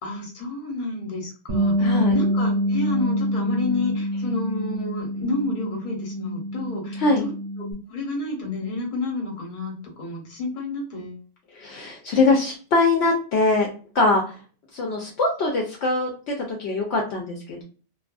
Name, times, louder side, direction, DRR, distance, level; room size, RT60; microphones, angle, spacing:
voice 1, 0.0-7.3 7.9-11.2, left 2 dB, 45° left, 0 dB, 1.0 m, -30 dB
Bass guitar, 1.5-7.7, equal, 65° right, 1.1 m, -26 dB
voice 2, 1.8-2.1 7.0-7.3 11.6-13.7 13.9-14.3 14.7-17.6, left 3 dB, 70° left, 0 dB, 0.8 m, -22 dB
2.6 x 2.5 x 2.2 m, 0.38 s
omnidirectional pair, 1.2 m